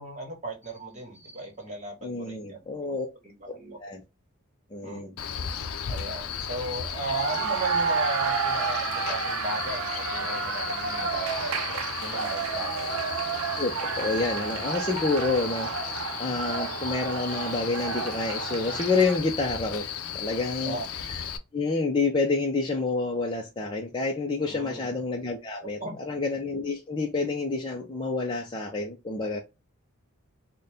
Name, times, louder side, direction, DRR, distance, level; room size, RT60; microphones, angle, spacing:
voice 1, 0.0-3.0 3.2-3.8 4.8-5.1 5.9-13.4 20.6-20.9 24.4-24.8 25.8-26.0, right 2 dB, 35° right, 1.4 m, -36 dB
voice 2, 2.0-3.1 3.5-3.6 3.8-4.0 4.7-5.2 13.6-19.8 20.1-20.8 21.1-21.2 21.5-29.4, left 3 dB, 20° left, 0.5 m, -28 dB
Male speech man speaking, 5.2-21.4, left 8 dB, 85° left, 0.5 m, -35 dB
sound 1, 6.8-19.2, right 6 dB, 75° right, 0.5 m, -31 dB
4.0 x 2.2 x 3.4 m
head